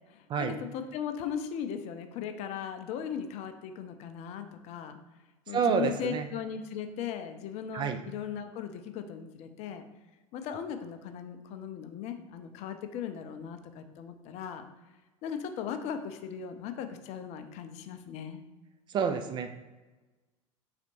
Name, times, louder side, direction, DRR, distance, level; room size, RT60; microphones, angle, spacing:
voice 1, 0.1-5.0 5.5-9.8 10.3-14.6 15.2-18.4, left 8 dB, 40° left, 8 dB, 0.5 m, -38 dB
voice 2, 5.5-6.3 7.7-8.0 18.9-19.5, right 6 dB, 25° right, 7 dB, 0.3 m, -28 dB
4.1 x 3.9 x 3.0 m, 1.2 s
figure-of-eight pair, 75°, 17 cm